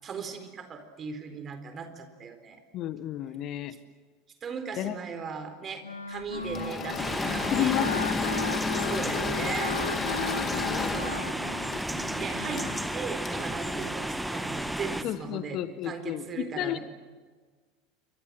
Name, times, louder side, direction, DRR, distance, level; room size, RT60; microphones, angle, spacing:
voice 1, 0.0-2.6 4.4-8.0 8.8-9.8 10.6-11.5 12.2-12.6 12.9-15.6 15.8-16.8, right 6 dB, 30° right, 8 dB, 4.1 m, -38 dB
voice 2, 2.7-3.8 4.8-5.0 7.5-8.2 15.0-16.8, left 12 dB, 40° left, 14 dB, 1.2 m, -31 dB
Wind instrument woodwind instrument, 5.8-12.9, left 3 dB, 80° left, 1.5 m, -37 dB
Engine / Mechanisms, 6.4-14.8, left 6 dB, 25° left, 2.4 m, -33 dB
sound 1, 7.0-15.0, right 1 dB, 5° right, 1.5 m, -33 dB
28.0 x 24.0 x 7.8 m, 1.4 s
figure-of-eight pair, 75°, 0 cm